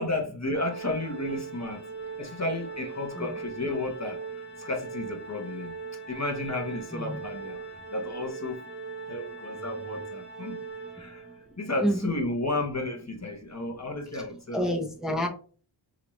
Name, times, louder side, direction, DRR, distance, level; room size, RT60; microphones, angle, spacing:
voice 1, 0.0-1.9 2.2-4.2 4.6-5.7 6.1-7.6 7.9-8.7 9.1-10.6 11.0-11.2 11.6-14.7, left 2 dB, 35° left, 1.0 m, -32 dB
Organ, 0.6-11.5, right 4 dB, 55° left, 1.6 m, -40 dB
voice 2, 11.8-12.1 14.5-15.3, equal, ahead, 0.9 m, -28 dB
5.1 x 2.8 x 3.1 m
wide cardioid pair, 70°, 47 cm